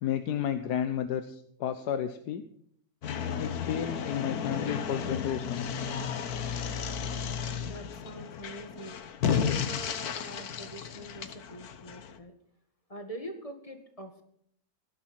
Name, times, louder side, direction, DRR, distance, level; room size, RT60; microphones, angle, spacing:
voice 1, 0.0-2.4 3.4-5.8, left 9 dB, 85° left, 10 dB, 1.4 m, -32 dB
sound 1, 3.0-12.2, left 7 dB, 70° left, 1.5 m, -33 dB
voice 2, 7.6-9.0 9.2-12.3 12.9-14.2, right 1 dB, 20° left, 4 dB, 2.0 m, -44 dB
17.5 x 11.0 x 4.5 m, 0.67 s
omnidirectional pair, 1.7 m